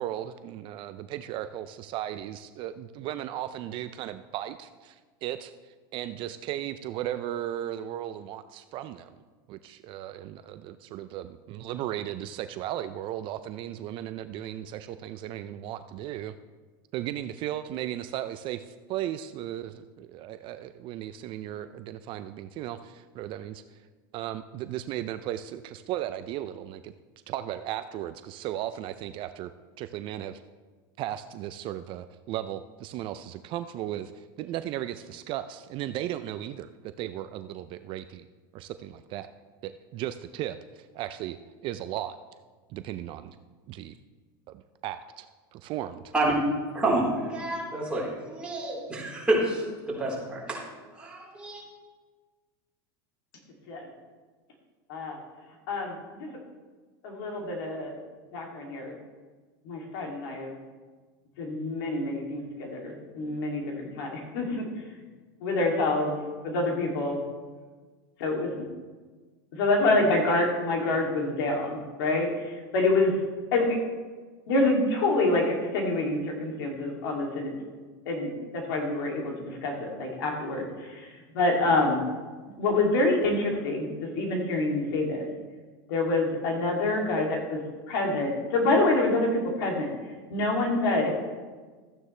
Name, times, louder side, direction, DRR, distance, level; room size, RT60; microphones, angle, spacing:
voice 1, 0.0-4.9 5.2-5.5 5.9-9.1 9.5-16.3 16.9-18.6 18.9-23.6 24.1-26.9 27.3-29.5 29.8-30.4 31.0-34.1 34.4-36.7 37.0-38.3 38.5-39.3 39.6-40.6 40.9-41.4 41.6-42.2 42.7-43.3 43.7-43.9 44.8-45.3 45.5-46.0, right 12 dB, 45° right, 11 dB, 0.4 m, -36 dB
voice 2, 46.7-50.6 51.0-51.6, right 2 dB, 10° right, -6 dB, 3.9 m, -28 dB
voice 3, 55.7-56.3 57.0-58.0 58.3-58.9 59.7-60.5 61.4-64.6 65.4-67.2 68.2-68.6 69.5-73.1 73.5-73.8 74.5-77.5 78.1-82.0 82.6-85.3 85.9-87.6 87.9-89.9 90.3-91.1, left 2 dB, 75° left, 0 dB, 2.7 m, -27 dB
13.5 x 9.4 x 3.3 m, 1.4 s
supercardioid pair, 130°, 12 cm